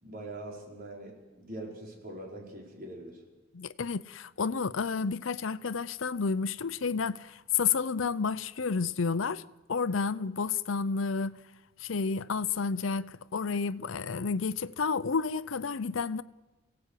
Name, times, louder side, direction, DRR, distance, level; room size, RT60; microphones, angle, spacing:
voice 1, 0.0-3.2, right 1 dB, 45° right, 5.3 m, -43 dB
voice 2, 3.5-9.4 9.7-11.4 11.8-16.2, left 5 dB, 85° left, 0.7 m, -30 dB
28.5 x 17.0 x 8.4 m
head